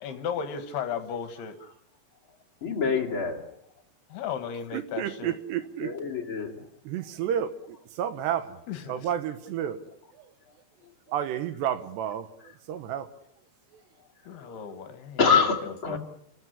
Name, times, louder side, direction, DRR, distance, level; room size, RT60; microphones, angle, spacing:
voice 1, 0.0-1.6 4.1-5.4 8.7-9.1 14.3-16.0, left 7 dB, 70° left, 10 dB, 3.2 m, -35 dB
voice 2, 2.6-3.4 5.8-6.6 14.3-14.5 15.2-16.0, left 5 dB, 35° left, -1 dB, 2.8 m, -25 dB
voice 3, 4.7-5.9 6.8-9.8 10.2-10.3 11.1-12.3 12.7-13.1 13.7-13.8, right 10 dB, 75° right, 11 dB, 3.4 m, -31 dB
28.5 x 14.5 x 9.9 m, 0.72 s
omnidirectional pair, 5.0 m